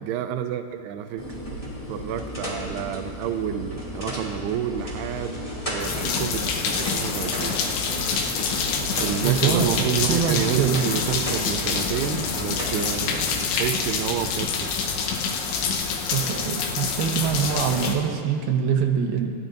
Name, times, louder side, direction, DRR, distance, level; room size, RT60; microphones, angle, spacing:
voice 1, 0.0-1.2 1.9-7.6 9.0-14.7, right 10 dB, 90° right, 7 dB, 2.3 m, -29 dB
sound 1, 1.2-13.4, equal, 25° left, 0.7 m, -34 dB
sound 2, 5.8-17.9, left 5 dB, 80° left, 3.4 m, -27 dB
voice 2, 9.2-10.8 16.1-19.3, right 7 dB, 75° right, 2 dB, 2.5 m, -24 dB
27.5 x 12.0 x 2.6 m, 2.2 s
omnidirectional pair, 5.3 m